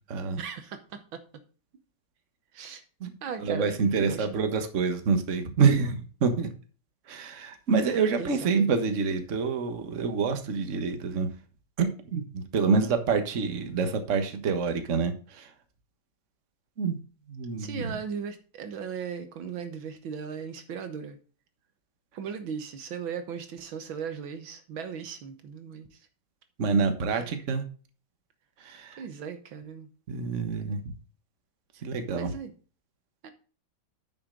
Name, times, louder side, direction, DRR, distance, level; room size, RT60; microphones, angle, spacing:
voice 1, 0.4-1.2 2.5-2.8 3.2-4.4 8.2-8.8 17.6-21.2 22.2-25.9 27.2-27.4 29.0-29.9 32.1-32.5 33.2-33.3, right 7 dB, 75° right, 8 dB, 1.9 m, -37 dB
voice 2, 3.4-6.5 7.1-11.3 11.8-15.5 16.8-17.0 17.3-17.9 26.6-27.6 28.6-29.0 30.1-30.8 31.8-32.3, right 5 dB, 40° right, 7 dB, 1.6 m, -27 dB
9.5 x 6.6 x 3.9 m, 0.37 s
omnidirectional pair, 2.2 m